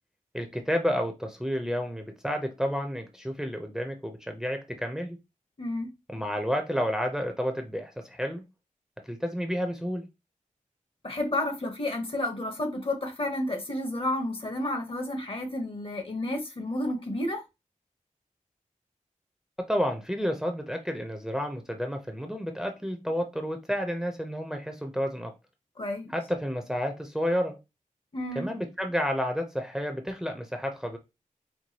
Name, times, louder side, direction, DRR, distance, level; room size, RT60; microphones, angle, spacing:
voice 1, 0.3-5.2 6.1-8.5 9.0-10.1 19.7-25.3 26.1-27.6 28.4-31.0, equal, 5° right, 0.6 m, -30 dB
voice 2, 5.6-5.9 11.0-17.4 25.8-26.1 28.1-28.5, left 1 dB, 40° left, 1.0 m, -31 dB
4.6 x 2.3 x 2.8 m
wide cardioid pair, 75°, 14 cm